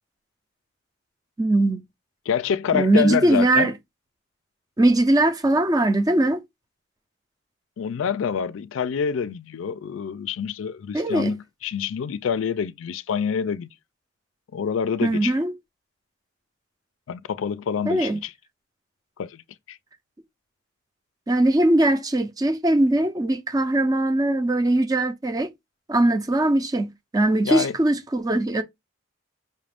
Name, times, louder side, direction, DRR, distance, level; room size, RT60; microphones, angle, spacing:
voice 1, 1.4-1.8 2.7-3.7 4.8-6.4 10.9-11.3 15.0-15.5 17.9-18.2 21.3-25.5 25.9-28.6, right 1 dB, 20° right, 0.4 m, -20 dB
voice 2, 2.3-3.7 7.8-13.7 14.5-15.4 17.1-18.3 19.2-19.4 19.7-19.8 27.4-27.8, left 7 dB, 90° left, 0.4 m, -27 dB
5.6 x 2.4 x 3.4 m
head